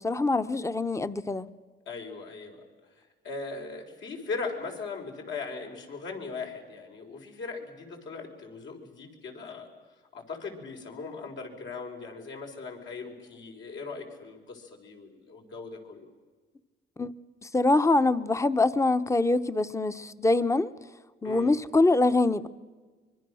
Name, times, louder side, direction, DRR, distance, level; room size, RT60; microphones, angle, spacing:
voice 1, 0.0-1.5 17.0-17.1 17.5-20.7 21.2-22.5, left 2 dB, 15° left, 0.9 m, -24 dB
voice 2, 1.9-2.6 3.0-9.7 10.1-16.1 21.2-21.5, left 4 dB, 70° left, 4.7 m, -39 dB
25.0 x 23.0 x 6.4 m
cardioid pair, 90°, 20 cm